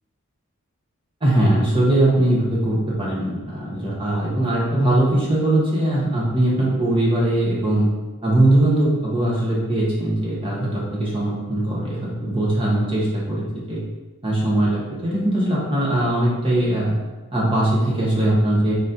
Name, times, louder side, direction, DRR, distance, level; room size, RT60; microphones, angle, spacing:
voice 1, 1.2-7.9 8.2-13.8 14.2-16.9 17.3-18.8, right 1 dB, 25° right, -6 dB, 1.1 m, -20 dB
4.0 x 2.7 x 3.8 m, 1.2 s
head